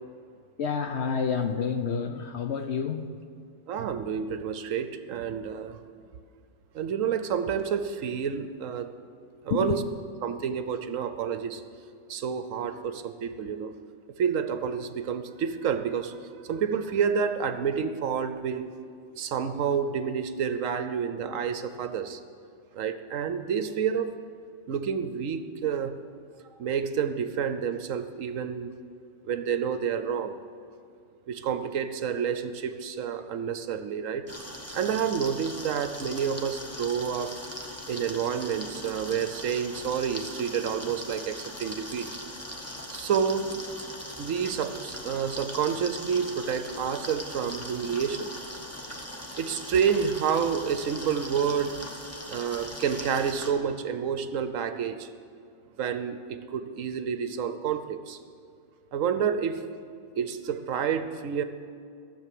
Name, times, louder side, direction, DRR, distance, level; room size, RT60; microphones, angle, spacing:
voice 1, 0.6-3.2 9.5-9.8, left 6 dB, 60° left, 7 dB, 0.7 m, -29 dB
voice 2, 3.7-5.8 6.7-8.9 9.4-9.8 10.2-11.6 12.1-13.7 14.2-18.7 19.2-22.2 22.7-24.1 24.7-26.0 26.6-28.7 29.3-30.4 31.3-34.3 34.7-37.4 37.9-42.1 42.9-43.6 44.2-48.3 49.4-51.8 52.3-55.1 55.8-58.2 58.9-59.6 60.2-61.4, right 7 dB, 65° right, 10 dB, 1.0 m, -29 dB
sound 1, 34.3-53.5, equal, 10° left, 1.1 m, -40 dB
15.5 x 7.1 x 7.6 m, 2.3 s
omnidirectional pair, 1.5 m